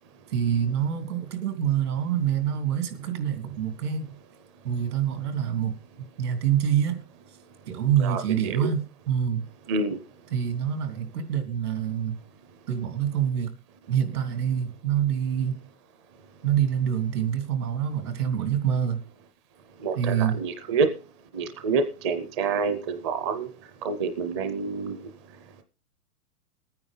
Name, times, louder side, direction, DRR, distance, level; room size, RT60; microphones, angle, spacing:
voice 1, 0.3-4.2 4.6-5.7 6.2-7.0 7.7-9.5 10.3-12.2 12.7-13.5 13.9-15.6 16.4-19.0 19.9-20.4, right 9 dB, 70° right, 7 dB, 3.3 m, -26 dB
voice 2, 8.0-8.7 9.7-10.0 19.8-20.9 21.3-23.5 23.8-25.0, right 4 dB, 20° right, 8 dB, 0.5 m, -27 dB
20.0 x 9.5 x 3.8 m, 0.36 s
hypercardioid pair, 155°, 47 cm